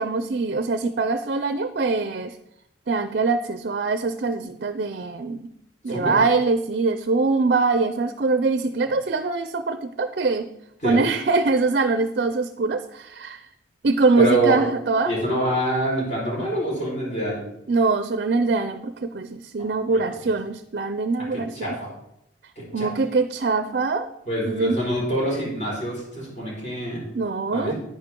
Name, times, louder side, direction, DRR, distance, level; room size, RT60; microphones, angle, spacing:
voice 1, 0.0-2.3 2.9-5.5 5.8-10.5 10.8-13.4 13.8-15.1 17.7-21.8 22.7-24.1 24.4-24.8 27.1-27.7, right 3 dB, 50° right, 10 dB, 0.5 m, -23 dB
voice 2, 14.2-14.6 15.0-17.4 19.8-20.0 21.3-21.9 22.6-22.9 24.3-27.0 27.5-27.7, right 1 dB, 40° left, -4 dB, 4.6 m, -26 dB
9.7 x 9.6 x 3.7 m, 0.79 s
head